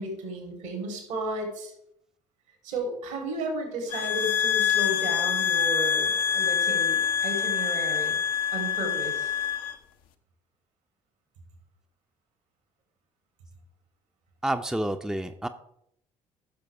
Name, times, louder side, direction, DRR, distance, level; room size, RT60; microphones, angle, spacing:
voice 1, 0.0-1.7 2.6-8.2 8.5-9.3, right 2 dB, 75° right, 1 dB, 3.4 m, -33 dB
sound 1, 3.9-9.8, left 9 dB, 65° left, 0.8 m, -26 dB
voice 2, 14.4-15.5, right 1 dB, 5° right, 7 dB, 0.7 m, -29 dB
14.0 x 6.7 x 3.5 m, 0.75 s
figure-of-eight pair, 50°, 16 cm